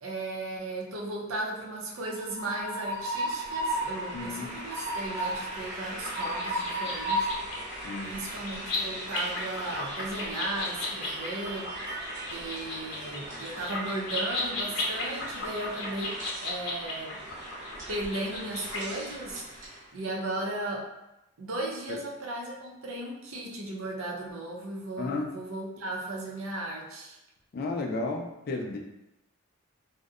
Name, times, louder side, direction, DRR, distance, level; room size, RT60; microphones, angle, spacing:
voice 1, 0.0-7.3 8.0-12.0 12.3-17.2 17.9-20.9 21.4-27.2, right 2 dB, 75° right, -1 dB, 0.5 m, -36 dB
Train, 2.0-19.8, right 1 dB, 35° right, 0.8 m, -37 dB
voice 2, 4.1-4.6 7.8-8.2 21.9-22.0 25.0-25.3 27.5-28.8, left 3 dB, 45° left, 0 dB, 0.3 m, -33 dB
sound 1, 6.0-18.8, left 2 dB, 75° left, 0.7 m, -36 dB
2.6 x 2.0 x 2.4 m, 0.91 s
head